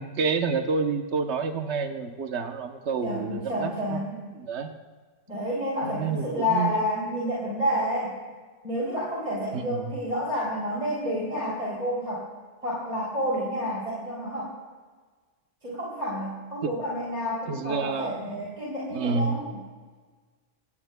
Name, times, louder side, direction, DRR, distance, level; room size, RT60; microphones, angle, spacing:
voice 1, 0.0-4.0 4.3-4.7 5.8-6.7 9.5-9.9 16.6-16.7 17.5-18.4 18.9-19.4, right 5 dB, 75° right, 6 dB, 1.2 m, -29 dB
voice 2, 3.0-4.2 5.3-8.2 8.6-12.3 12.6-14.5 15.6-19.6, equal, 35° right, -6 dB, 3.2 m, -29 dB
25.0 x 17.5 x 2.2 m, 1.4 s
omnidirectional pair, 1.2 m